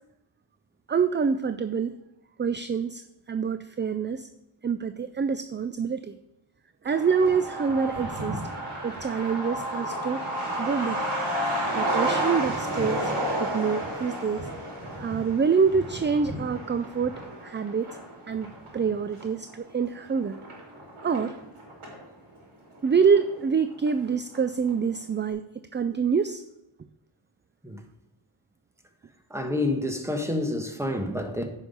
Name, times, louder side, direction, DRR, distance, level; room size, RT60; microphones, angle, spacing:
voice 1, 0.9-2.0 2.4-4.3 4.6-6.2 6.8-8.4 8.8-10.2 10.6-11.1 11.7-13.1 13.4-14.5 15.0-18.0 18.3-20.4 21.0-21.4 22.8-26.4, right 6 dB, 25° right, 0.4 m, -26 dB
Truck, 6.8-22.0 22.4-22.5 22.7-23.6 23.9-24.0 24.3-24.7, right 1 dB, 75° right, 3.6 m, -32 dB
voice 2, 29.3-31.5, left 1 dB, 5° right, 1.3 m, -28 dB
9.6 x 5.5 x 5.4 m
wide cardioid pair, 65°, 50 cm